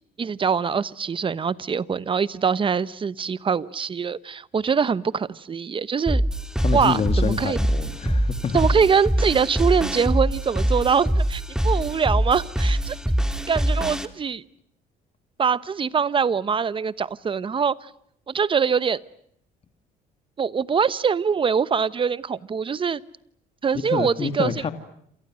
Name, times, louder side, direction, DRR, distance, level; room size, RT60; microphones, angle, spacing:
voice 1, 0.2-6.2 6.7-7.6 8.5-13.0 13.5-14.4 15.4-17.9 18.3-19.0 20.4-23.0 23.6-24.7, right 6 dB, 30° right, 1.0 m, -23 dB
sound 1, 6.1-14.1, right 1 dB, 5° right, 2.2 m, -24 dB
voice 2, 6.6-8.7 23.7-24.7, left 6 dB, 35° left, 2.4 m, -27 dB
28.5 x 28.0 x 6.4 m
cardioid pair, 110°, 17 cm